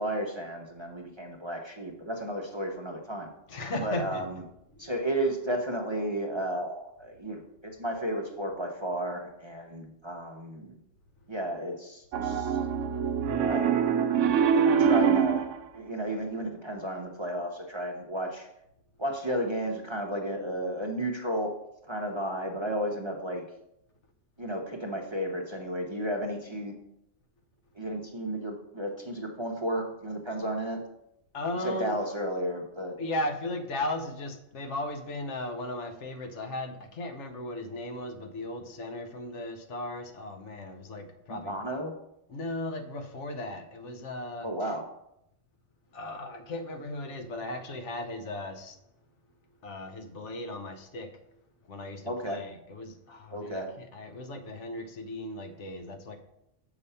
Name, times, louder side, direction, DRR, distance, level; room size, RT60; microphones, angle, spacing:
voice 1, 0.0-3.3 3.8-4.4 4.8-10.8 11.3-12.6 13.5-13.8 14.5-15.5 15.7-18.5 19.0-21.5 21.8-23.4 24.4-26.7 27.8-30.8 31.6-32.9 41.3-41.9 44.4-44.8 52.0-52.4 53.3-53.7, right 1 dB, 30° right, 1 dB, 0.7 m, -33 dB
voice 2, 3.5-4.2 4.8-4.9 31.3-32.0 33.0-41.5 42.3-44.5 45.9-48.8 49.6-51.1 51.7-56.2, left 1 dB, 70° left, 6 dB, 1.2 m, -36 dB
Piano, 12.1-15.6, right 7 dB, 80° right, 0.9 m, -24 dB
6.9 x 4.9 x 5.5 m, 0.81 s
omnidirectional pair, 1.3 m